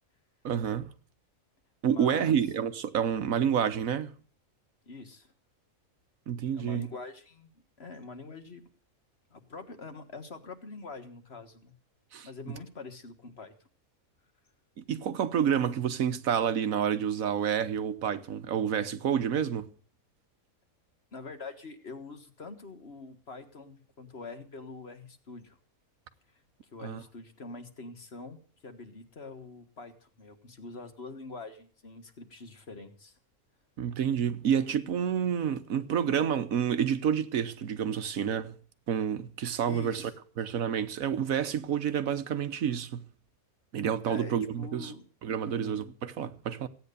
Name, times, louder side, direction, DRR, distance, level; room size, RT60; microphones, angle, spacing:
voice 1, 0.4-0.9 1.8-4.1 6.3-6.8 12.1-12.3 14.8-19.7 26.8-27.0 33.8-38.5 38.9-40.1 40.4-43.0 43.7-44.9 45.2-46.7, right 8 dB, 75° right, 1.4 m, -29 dB
voice 2, 1.9-2.4 4.9-5.3 6.5-7.5 7.8-8.6 9.3-11.7 12.2-13.5 21.1-25.6 26.7-33.1 39.7-40.1 44.0-45.1 45.4-45.8, left 3 dB, 45° left, 1.8 m, -45 dB
16.0 x 9.4 x 6.8 m
omnidirectional pair, 1.5 m